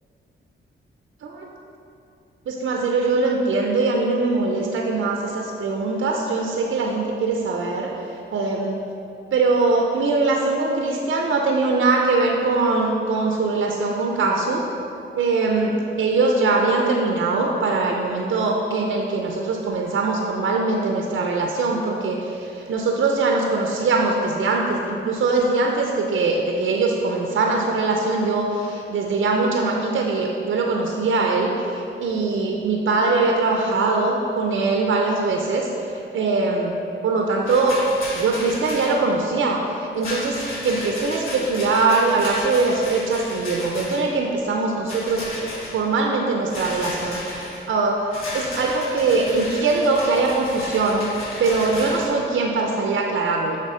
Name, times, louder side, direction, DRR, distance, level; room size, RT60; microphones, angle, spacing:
voice 1, 2.5-7.9 8.3-8.8 9.3-14.7 15.2-36.8 37.0-37.8 38.1-48.1 48.3-51.1 51.4-53.6, right 3 dB, 70° right, 0 dB, 0.6 m, -22 dB
Rattle, 37.4-38.9 40.0-44.1 44.9-45.7 46.5-47.6 48.1-52.1, left 1 dB, 85° left, 1.5 m, -34 dB
6.6 x 3.5 x 4.8 m, 2.7 s
cardioid pair, 75°, 21 cm